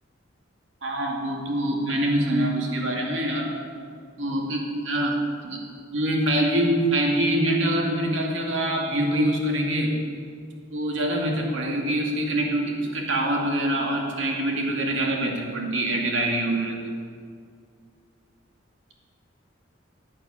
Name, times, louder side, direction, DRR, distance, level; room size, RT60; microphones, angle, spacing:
voice 1, 0.8-3.5 4.2-5.2 5.4-5.6 5.9-9.9 10.7-16.7, right 1 dB, 70° right, 0 dB, 2.5 m, -25 dB
14.5 x 8.9 x 6.8 m, 2.2 s
head